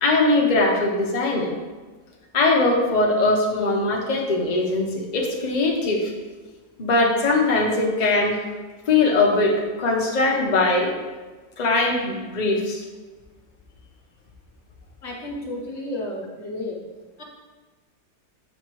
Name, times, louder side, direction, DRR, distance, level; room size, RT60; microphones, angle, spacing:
voice 1, 0.0-1.5 2.3-6.1 6.8-8.4 8.9-11.0 11.6-12.8, left 2 dB, 65° left, -1 dB, 0.4 m, -21 dB
voice 2, 15.0-16.8 17.2-17.3, left 1 dB, 40° left, -2 dB, 1.3 m, -32 dB
7.1 x 5.5 x 3.1 m, 1.3 s
omnidirectional pair, 1.9 m